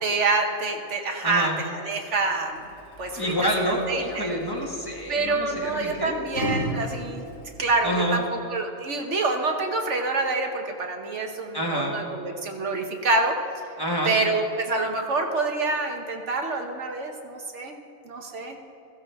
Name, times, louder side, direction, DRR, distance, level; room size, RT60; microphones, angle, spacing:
voice 1, 0.0-2.6 3.0-3.3 3.9-4.3 5.1-7.2 7.6-13.3 14.0-17.8 18.0-18.6, right 3 dB, 65° right, 3 dB, 1.4 m, -26 dB
voice 2, 1.2-1.6 3.2-6.2 7.8-8.2 11.5-12.0 13.8-14.1, equal, 20° left, -2 dB, 1.9 m, -27 dB
Yell, 2.5-8.0, equal, 80° left, 4.2 m, -36 dB
16.0 x 14.5 x 3.5 m, 2.8 s
omnidirectional pair, 1.3 m